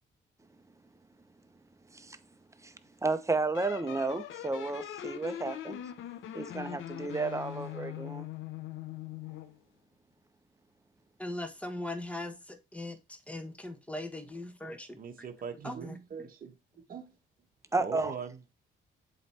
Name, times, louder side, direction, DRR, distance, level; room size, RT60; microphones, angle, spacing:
voice 1, 2.6-5.8 6.3-8.3 17.7-18.1, right 3 dB, 15° right, 0.9 m, -32 dB
sound 1, 3.5-9.6, left 11 dB, 80° left, 0.9 m, -41 dB
voice 2, 11.2-15.3 15.6-16.0, left 1 dB, 5° left, 1.4 m, -40 dB
voice 3, 15.0-16.5 16.9-17.1 17.8-18.5, right 6 dB, 45° right, 1.2 m, -41 dB
7.9 x 3.2 x 4.3 m
cardioid pair, 90°, 20 cm